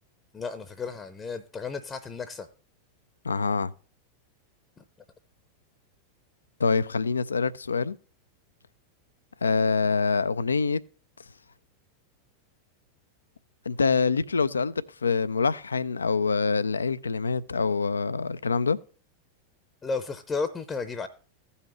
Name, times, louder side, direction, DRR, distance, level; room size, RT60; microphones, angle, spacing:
voice 1, 0.3-2.5 4.8-4.9 19.8-21.1, left 4 dB, 20° left, 0.7 m, -33 dB
voice 2, 3.2-3.7 6.6-8.0 9.4-10.8 13.7-18.8, left 4 dB, 75° left, 0.4 m, -25 dB
16.0 x 5.6 x 3.0 m
figure-of-eight pair, 90°, 0 cm